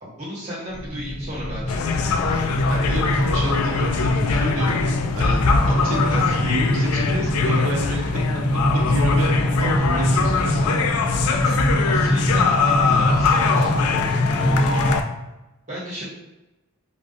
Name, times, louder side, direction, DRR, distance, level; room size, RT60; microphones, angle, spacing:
voice 1, 0.0-2.3 11.3-14.8 15.7-16.0, equal, 35° right, -8 dB, 1.4 m, -34 dB
sound 1, 0.7-15.0, equal, 60° left, 1.3 m, -24 dB
sound 2, 1.7-15.0, left 4 dB, 90° left, 0.3 m, -22 dB
voice 2, 2.7-4.7 5.2-5.4 5.7-8.2 8.5-9.3 9.6-10.6, right 1 dB, 70° right, -3 dB, 0.8 m, -29 dB
3.3 x 2.5 x 2.6 m, 1.0 s
head